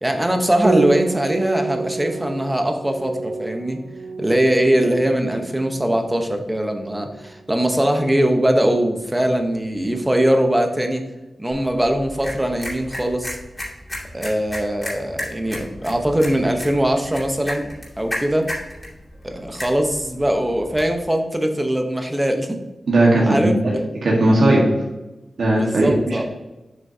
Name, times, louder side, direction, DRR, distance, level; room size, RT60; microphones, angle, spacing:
voice 1, 0.0-3.8 4.2-11.0 11.4-13.4 14.1-17.7 18.0-18.5 19.2-22.6 23.3-23.5 25.5-26.2, right 1 dB, 10° right, 4 dB, 0.9 m, -21 dB
Piano, 0.6-10.0, right 4 dB, 65° right, 0.8 m, -30 dB
sound 1, 11.5-21.0, left 1 dB, 20° left, 2.3 m, -34 dB
voice 2, 22.9-23.7 24.0-24.6 25.4-26.2, right 1 dB, 85° right, -4 dB, 1.5 m, -17 dB
7.4 x 6.1 x 2.8 m, 1.0 s
wide cardioid pair, 115°, 0 cm